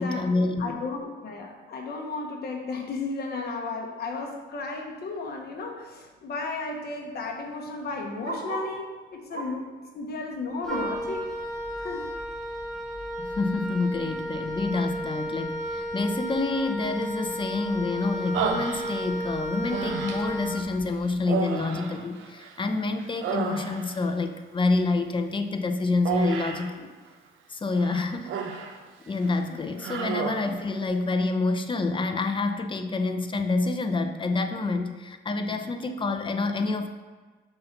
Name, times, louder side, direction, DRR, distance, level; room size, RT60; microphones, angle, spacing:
voice 1, 0.0-0.7 13.2-26.9 27.5-28.3 28.6-28.7 29.1-36.9, left 3 dB, 25° left, 7 dB, 0.6 m, -27 dB
voice 2, 0.6-9.7 9.9-11.3 11.8-12.1 29.5-29.8, left 3 dB, 55° left, 1 dB, 0.9 m, -34 dB
Bark, 5.1-5.3 5.7-5.8 6.0-8.8 9.3-9.7 10.1-11.1 11.5-11.6 12.0-12.1 12.8-12.9, right 2 dB, 45° right, 2.1 m, -38 dB
Wind instrument woodwind instrument, 10.6-21.1, equal, 5° left, 1.2 m, -33 dB
Human voice, 18.3-19.2 19.7-20.4 21.2-22.7 23.0-24.1 26.1-26.7 27.8-28.8 29.1-29.4 29.8-30.6, right 6 dB, 80° right, 0.7 m, -31 dB
5.6 x 4.0 x 5.7 m, 1.4 s
cardioid pair, 90°, 20 cm